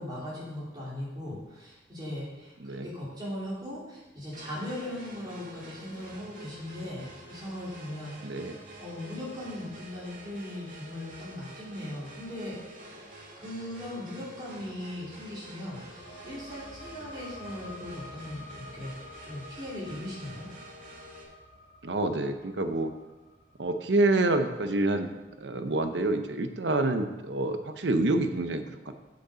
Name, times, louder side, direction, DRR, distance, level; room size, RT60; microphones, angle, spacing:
voice 1, 0.0-8.1 8.8-12.6 13.4-18.9 19.2-20.5, left 1 dB, 25° right, -7 dB, 3.5 m, -39 dB
voice 2, 2.6-2.9 8.2-8.6 21.8-22.9 23.6-25.1 25.4-28.9, right 2 dB, 80° right, 8 dB, 0.8 m, -27 dB
sound 1, 4.3-21.2, right 1 dB, 45° right, 2.0 m, -48 dB
sound 2, 15.2-26.3, left 1 dB, 50° left, 1.2 m, -51 dB
8.2 x 6.5 x 6.8 m, 1.1 s
head